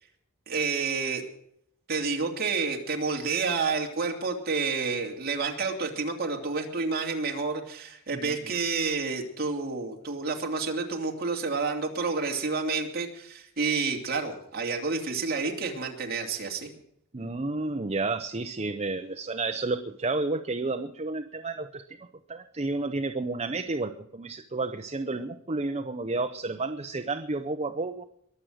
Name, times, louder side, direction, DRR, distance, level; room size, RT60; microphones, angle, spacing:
voice 1, 0.5-1.2 1.9-16.7, right 4 dB, 45° right, 1 dB, 2.8 m, -29 dB
voice 2, 17.1-21.8 22.3-28.0, right 3 dB, 30° right, 8 dB, 0.7 m, -31 dB
22.5 x 7.7 x 6.5 m, 0.72 s
head